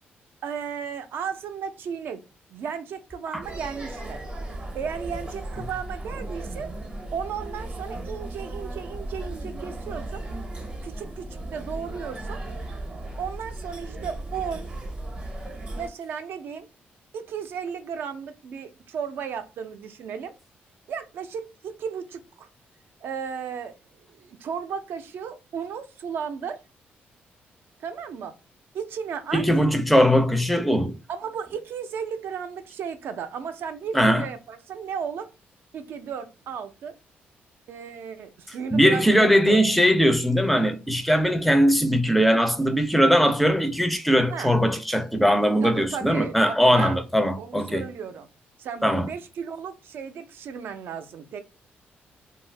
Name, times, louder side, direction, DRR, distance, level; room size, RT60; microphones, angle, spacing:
voice 1, 0.4-2.2 2.5-4.2 4.7-6.7 7.1-10.2 10.8-12.4 13.2-14.7 15.7-16.7 17.1-20.3 20.9-22.5 23.0-23.8 24.2-26.6 27.8-28.4 28.7-29.4 31.1-35.3 35.7-36.9 37.7-39.6 44.3-44.5 45.6-47.0 47.4-48.3 48.6-51.4, right 7 dB, 70° right, 0.5 m, -34 dB
sound 1, 3.4-15.9, right 1 dB, 30° right, 0.7 m, -36 dB
voice 2, 29.3-31.0 33.9-34.3 38.7-47.8 48.8-49.1, equal, ahead, 0.4 m, -20 dB
2.7 x 2.3 x 3.2 m
cardioid pair, 150°, 4 cm